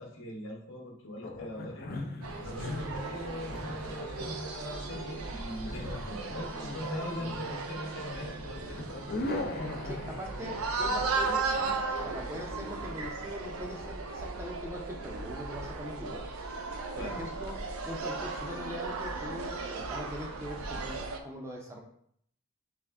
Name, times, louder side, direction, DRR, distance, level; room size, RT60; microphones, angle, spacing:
voice 1, 0.0-1.9 2.3-9.1 16.9-17.3, left 1 dB, 65° left, 0 dB, 0.9 m, -41 dB
sound 1, 1.2-13.9, left 2 dB, 45° left, 0.5 m, -41 dB
sound 2, 2.2-21.2, right 3 dB, 85° right, 0.5 m, -36 dB
voice 2, 9.8-11.5 12.0-16.2 17.0-17.6 17.9-21.8, equal, 15° right, -1 dB, 0.5 m, -42 dB
3.6 x 3.1 x 3.4 m, 0.65 s
head